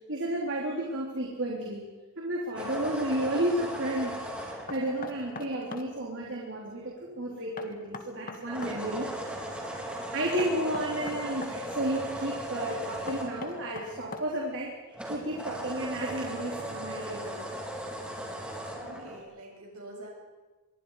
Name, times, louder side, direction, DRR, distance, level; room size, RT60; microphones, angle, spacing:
voice 1, 0.1-1.8 2.2-9.1 9.7-14.7 15.1-17.5 19.0-19.1, right 1 dB, 55° right, -2 dB, 3.7 m, -32 dB
sound 1, 2.5-6.0 8.4-14.6 14.9-19.2, right 1 dB, 5° right, 4.2 m, -38 dB
Knock, 4.7-5.9 7.6-8.8 10.4-11.6 13.1-14.5, left 3 dB, 40° left, 1.8 m, -41 dB
voice 2, 18.4-20.1, right 1 dB, 80° right, -1 dB, 7.2 m, -47 dB
26.0 x 22.5 x 5.0 m, 1.3 s
head